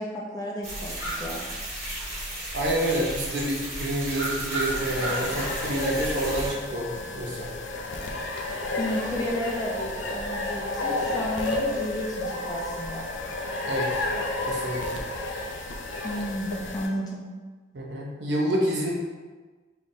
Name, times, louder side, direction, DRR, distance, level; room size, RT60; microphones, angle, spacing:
voice 1, 0.0-1.5 8.8-13.1 16.0-17.3, equal, 20° left, -2 dB, 0.5 m, -32 dB
sound 1, 0.6-6.5, right 1 dB, 35° right, 1.4 m, -33 dB
voice 2, 2.5-7.5 13.6-14.0 14.5-15.0 17.7-18.9, right 1 dB, 65° right, -2 dB, 0.7 m, -28 dB
sound 2, 4.7-16.9, left 2 dB, 70° left, 0.5 m, -31 dB
3.8 x 3.5 x 2.6 m, 1.3 s
head